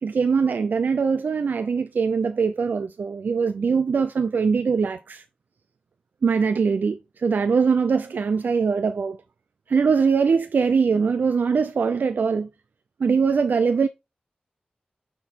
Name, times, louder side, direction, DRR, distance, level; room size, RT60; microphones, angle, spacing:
voice 1, 0.0-5.2 6.2-9.2 9.7-12.5 13.0-13.9, right 5 dB, 75° right, 0.5 m, -22 dB
9.3 x 3.7 x 4.4 m
wide cardioid pair, 115°, 3 cm